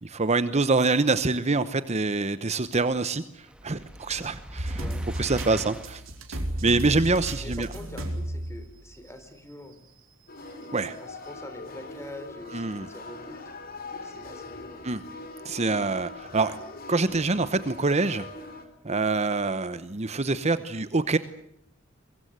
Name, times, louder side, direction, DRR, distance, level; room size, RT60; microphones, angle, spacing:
voice 1, 0.0-4.8 5.2-6.0 6.3-7.7 10.7-11.0 12.5-12.9 14.8-15.0 15.4-16.6 16.9-18.2 18.8-21.2, right 3 dB, 35° right, 13 dB, 0.9 m, -25 dB
sound 1, 3.4-6.1, equal, 5° right, 1.7 m, -41 dB
sound 2, 4.6-9.2 9.7-9.8 10.8-10.9, right 1 dB, 70° right, 4.7 m, -34 dB
voice 2, 4.8-5.1 5.7-5.9 7.4-9.8 11.0-13.4 14.0-14.8, left 1 dB, 15° left, 9 dB, 4.0 m, -44 dB
sound 3, 10.3-18.7, left 3 dB, 50° left, 4.2 m, -42 dB
23.5 x 22.5 x 8.1 m, 0.73 s
head